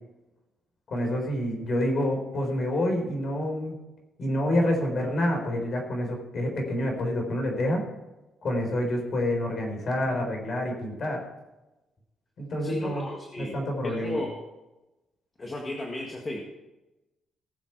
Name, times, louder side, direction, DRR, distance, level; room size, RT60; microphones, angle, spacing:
voice 1, 0.9-3.7 4.2-7.8 8.4-11.2 12.4-13.1 13.4-14.2, left 1 dB, 45° left, 2 dB, 4.0 m, -28 dB
voice 2, 12.6-13.6 13.8-14.4 15.4-16.4, left 1 dB, 20° left, -1 dB, 1.7 m, -34 dB
18.5 x 7.4 x 4.6 m, 1.0 s
cardioid pair, 150°, 0 cm